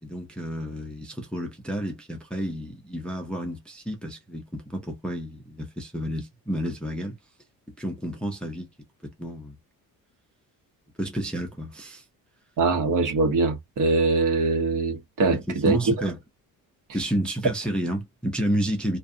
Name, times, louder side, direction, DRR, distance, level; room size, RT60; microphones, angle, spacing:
voice 1, 0.0-7.2 7.8-8.7 9.0-9.6 11.0-12.0 15.3-16.2 16.9-19.0, right 1 dB, 5° left, 0.5 m, -30 dB
voice 2, 12.6-15.8, right 3 dB, 55° right, 1.2 m, -23 dB
2.5 x 2.3 x 2.6 m
cardioid pair, 165°, 36 cm